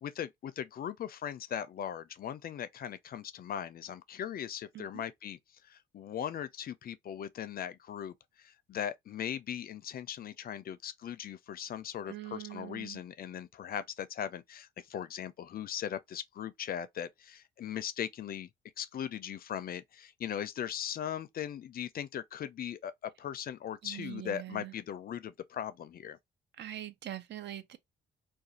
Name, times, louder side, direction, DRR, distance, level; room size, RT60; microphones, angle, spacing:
voice 1, 0.0-5.4 5.7-18.5 18.8-26.2, left 9 dB, 50° left, 0.4 m, -39 dB
voice 2, 12.1-13.0 23.8-24.7 26.6-27.8, right 13 dB, 60° right, 0.5 m, -43 dB
2.4 x 2.3 x 2.7 m
cardioid pair, 90°, 20 cm